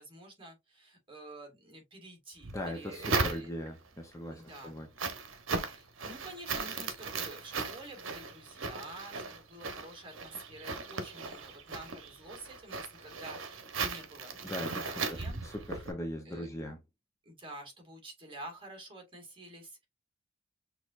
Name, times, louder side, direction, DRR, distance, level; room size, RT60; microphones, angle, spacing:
voice 1, 0.0-3.5 4.3-4.8 5.6-15.4 15.7-15.9 16.2-16.5 17.3-19.9, right 1 dB, 25° right, 1.9 m, -49 dB
sound 1, 2.4-3.9 4.3-15.9, right 4 dB, 70° right, 0.9 m, -37 dB
voice 2, 2.5-4.9 14.4-16.8, left 1 dB, 15° left, 0.7 m, -40 dB
6.4 x 2.8 x 2.4 m
head